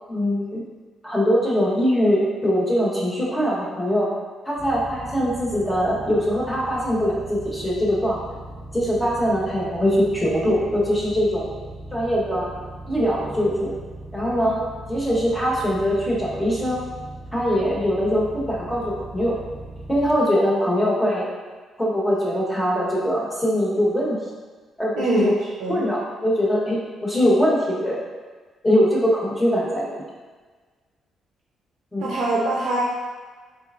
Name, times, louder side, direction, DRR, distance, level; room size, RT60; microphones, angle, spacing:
voice 1, 0.1-0.6 1.0-4.1 4.5-8.2 8.7-11.5 11.9-12.5 12.9-13.7 14.1-14.6 14.9-16.8 17.3-19.3 19.9-21.3 21.8-24.2 24.8-25.3 25.7-28.0 28.6-30.0 31.9-32.1, equal, 15° left, -5 dB, 0.9 m, -22 dB
sound 1, 4.6-20.2, right 1 dB, 25° right, 0.5 m, -39 dB
voice 2, 24.9-25.3 25.6-25.9 32.0-32.8, right 2 dB, 90° right, -5 dB, 0.5 m, -23 dB
3.3 x 3.0 x 2.3 m, 1.4 s
cardioid pair, 90°, 0 cm